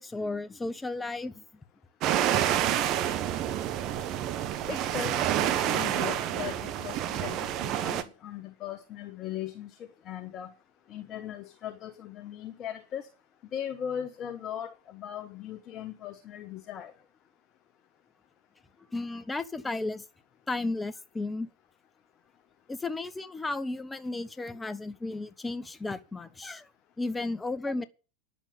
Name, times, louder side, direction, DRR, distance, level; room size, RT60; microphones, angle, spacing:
voice 1, 0.0-1.4 18.9-20.0 20.5-21.5 22.7-26.7 27.0-27.8, left 2 dB, 10° left, 1.0 m, -34 dB
sound 1, 2.0-8.0, right 11 dB, 35° right, 1.2 m, -28 dB
voice 2, 4.7-10.5 10.9-13.1 13.5-16.9, left 10 dB, 30° left, 1.2 m, -39 dB
10.0 x 7.2 x 8.7 m
figure-of-eight pair, 90°, 0 cm